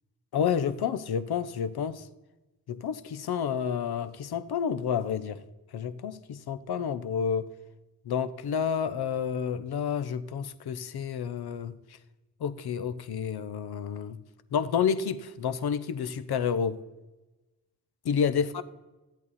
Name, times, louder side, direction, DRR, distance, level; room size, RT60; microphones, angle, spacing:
voice 1, 0.3-2.0 2.7-5.4 5.7-7.5 8.1-11.7 12.4-14.2 14.5-16.8 18.0-18.6, left 7 dB, 65° left, 0.8 m, -29 dB
12.5 x 8.4 x 4.2 m
supercardioid pair, 45°, 42 cm